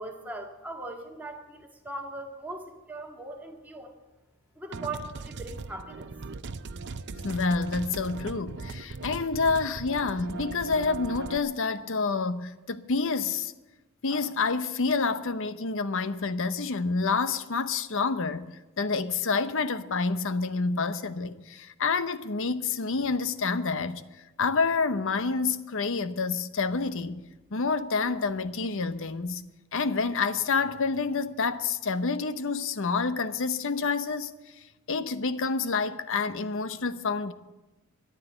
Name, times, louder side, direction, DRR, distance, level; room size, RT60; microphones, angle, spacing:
voice 1, 0.0-3.9 4.6-6.1, right 2 dB, 5° right, 1.7 m, -39 dB
sound 1, 4.7-11.4, right 3 dB, 50° right, 0.6 m, -39 dB
voice 2, 7.1-13.5 14.0-27.2 27.5-29.4 29.7-34.3 34.9-37.3, left 4 dB, 60° left, 0.8 m, -28 dB
13.5 x 10.5 x 8.0 m
head